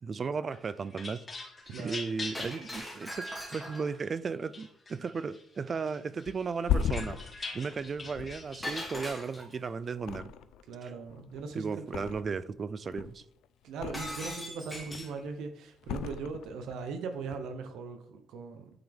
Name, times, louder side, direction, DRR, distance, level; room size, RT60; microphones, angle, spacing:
voice 1, 0.0-1.3 1.8-7.2 7.5-10.3 10.8-10.9 11.5-13.2, right 5 dB, 35° right, 15 dB, 0.3 m, -35 dB
sound 1, 0.5-4.1 4.5-5.4 5.8-8.9, left 3 dB, 25° left, 1.3 m, -43 dB
voice 2, 1.7-2.1 10.7-11.9 13.6-18.7, right 5 dB, 80° right, 7 dB, 0.8 m, -39 dB
Shatter, 2.3-4.0 8.6-9.7 13.9-15.2, equal, 5° left, 1.7 m, -40 dB
Thump thud, 6.3-9.5 10.0-10.8 11.0-12.5 12.8-14.4 14.7-15.3 15.8-16.8 17.2-17.4, left 8 dB, 85° left, 0.4 m, -36 dB
8.7 x 3.8 x 3.5 m, 0.70 s
cardioid pair, 115°, 0 cm